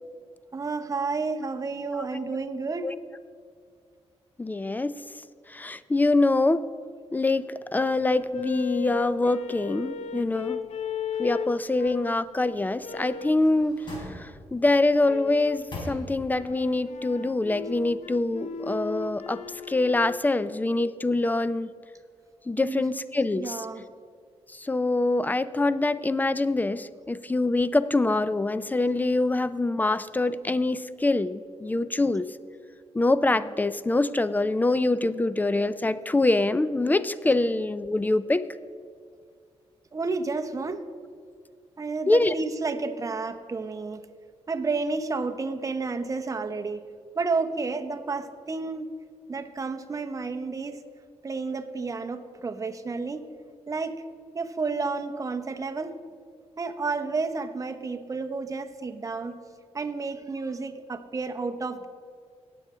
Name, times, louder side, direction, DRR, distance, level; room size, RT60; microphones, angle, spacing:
voice 1, 0.5-2.9 22.6-22.9 23.3-23.9 39.9-40.8 41.8-44.0 44.5-46.8 47.1-48.9 49.3-50.8 51.2-53.2 53.7-53.9 54.3-55.9 56.6-59.4 59.7-61.9, right 4 dB, 30° right, 7 dB, 0.8 m, -31 dB
voice 2, 4.4-4.9 5.5-6.6 7.1-10.6 11.2-13.8 14.2-19.4 19.7-21.7 22.5-23.6 24.6-32.3 32.9-38.5 42.1-42.3, left 2 dB, 15° left, 15 dB, 0.4 m, -24 dB
sound 1, 8.0-12.2 12.8-13.4 15.0-15.7 16.3-20.2, left 7 dB, 85° left, 0.5 m, -36 dB
sound 2, 13.1-14.7 15.2-16.5 16.9-17.0, left 1 dB, 45° left, 3.4 m, -41 dB
18.5 x 7.7 x 3.7 m, 2.1 s
cardioid pair, 95°, 11 cm